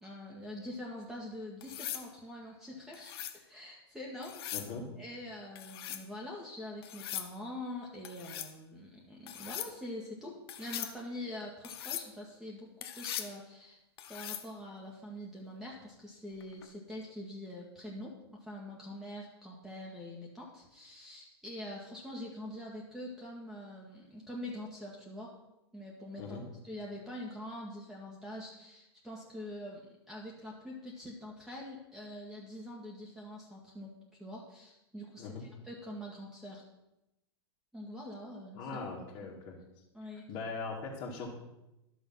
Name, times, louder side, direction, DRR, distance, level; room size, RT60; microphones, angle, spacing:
voice 1, 0.0-4.4 5.0-13.8 14.1-25.3 25.7-33.9 34.2-36.6 37.7-38.8 39.9-40.3, left 1 dB, ahead, -4 dB, 1.7 m, -44 dB
sound 1, 1.6-2.1 2.9-3.4 4.2-4.7 5.6-6.0 6.8-7.3 8.0-8.5 9.3-9.7 10.5-10.9 11.6-12.1 12.8-13.3 14.0-14.5 16.4-16.7, left 11 dB, 65° left, 1.0 m, -40 dB
voice 2, 4.5-4.8 26.2-26.4 35.2-35.4 38.6-39.5 40.3-41.3, left 4 dB, 45° left, -4 dB, 2.3 m, -40 dB
11.0 x 6.3 x 5.7 m, 0.92 s
hypercardioid pair, 115°, 14 cm